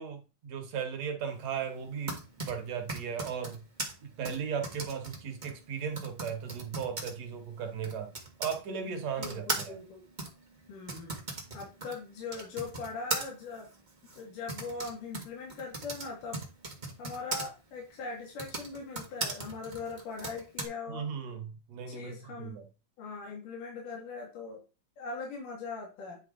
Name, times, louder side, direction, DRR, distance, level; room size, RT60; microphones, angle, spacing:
voice 1, 0.0-3.6 4.2-8.1 8.4-9.8 20.9-22.6, right 7 dB, 60° right, 5 dB, 2.2 m, -36 dB
Typing, 1.8-8.6 9.2-17.4 18.2-20.6, right 2 dB, 40° right, 0.6 m, -39 dB
voice 2, 9.2-10.0 10.7-11.2 11.5-13.7 14.2-16.4 17.0-21.1 21.9-22.6 23.0-24.6 25.0-26.2, left 4 dB, 80° left, -2 dB, 3.5 m, -40 dB
9.5 x 4.5 x 3.7 m, 0.32 s
omnidirectional pair, 3.7 m